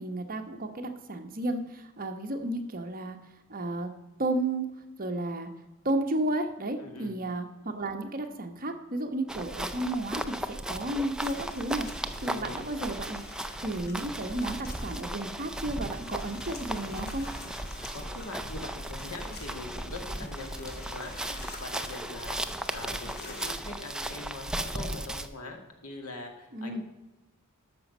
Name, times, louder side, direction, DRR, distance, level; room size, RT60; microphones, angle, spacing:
voice 1, 0.0-3.2 3.5-3.9 4.2-4.6 5.0-5.5 5.8-11.9 12.2-13.2 13.6-17.3 26.5-26.8, right 1 dB, 40° right, 5 dB, 1.1 m, -32 dB
voice 2, 6.8-7.1 12.0-12.6 17.8-26.8, left 2 dB, 85° left, 3 dB, 2.0 m, -42 dB
sound 1, 9.3-25.3, right 1 dB, 5° right, 0.5 m, -36 dB
sound 2, 11.2-23.5, left 3 dB, 50° left, 1.7 m, -48 dB
13.5 x 6.1 x 5.4 m, 1.0 s
head